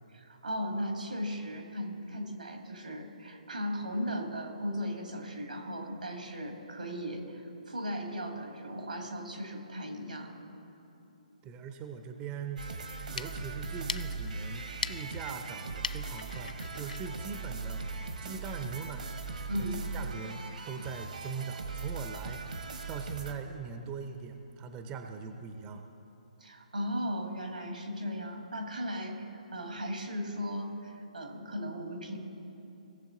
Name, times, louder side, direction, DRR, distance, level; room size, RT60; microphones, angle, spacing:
voice 1, 0.1-10.3 19.5-19.8 26.4-32.2, equal, 90° right, 3 dB, 2.0 m, -37 dB
voice 2, 11.4-12.7 13.1-18.0 18.2-19.1 19.9-22.4 22.9-25.9, right 5 dB, 20° right, 6 dB, 0.6 m, -41 dB
sound 1, 12.6-23.3, right 4 dB, 70° right, 1.2 m, -39 dB
sound 2, 12.9-18.2, left 5 dB, 75° left, 0.4 m, -42 dB
18.0 x 6.9 x 3.8 m, 2.9 s
figure-of-eight pair, 140°, 4 cm